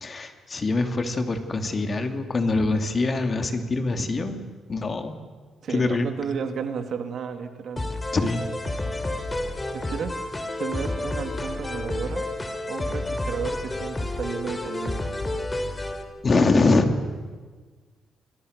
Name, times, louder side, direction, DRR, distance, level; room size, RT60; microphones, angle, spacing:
voice 1, 0.0-4.4 4.7-5.2 5.7-6.1 8.1-8.4 16.2-16.9, left 3 dB, 35° left, 6 dB, 2.7 m, -23 dB
voice 2, 5.6-7.9 9.7-10.2 10.6-12.3 12.7-15.1, right 6 dB, 60° right, 7 dB, 2.5 m, -33 dB
sound 1, 7.8-16.0, left 2 dB, 20° left, 3.3 m, -30 dB
29.0 x 21.5 x 6.7 m, 1.4 s
cardioid pair, 100°, 0 cm